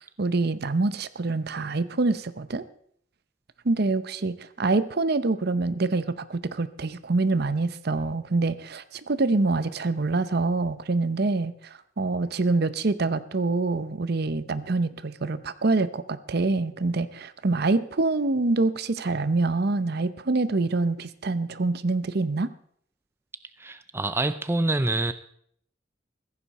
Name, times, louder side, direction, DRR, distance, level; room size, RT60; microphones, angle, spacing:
voice 1, 0.0-2.6 3.6-22.5, right 3 dB, 55° right, 0.7 m, -26 dB
voice 2, 23.6-25.1, right 2 dB, 15° right, 0.5 m, -26 dB
15.5 x 14.5 x 4.2 m
head